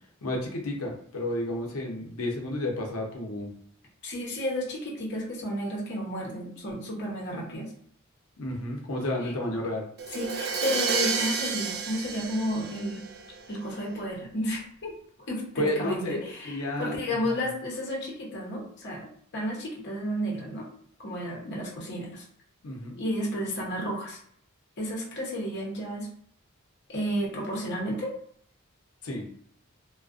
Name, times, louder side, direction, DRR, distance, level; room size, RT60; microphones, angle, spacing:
voice 1, 0.2-3.5 8.4-9.9 15.6-17.0 17.3-17.4 22.6-23.0 29.0-29.3, left 1 dB, 90° left, 0 dB, 0.7 m, -31 dB
voice 2, 4.0-7.7 9.2-9.3 10.1-13.0 13.5-14.9 15.3-20.7 21.0-22.2 23.0-24.2 24.8-26.1 26.9-28.1, equal, 55° left, -2 dB, 0.8 m, -32 dB
Crash cymbal, 10.0-13.7, right 5 dB, 50° right, 0.3 m, -30 dB
2.4 x 2.2 x 2.4 m, 0.64 s
head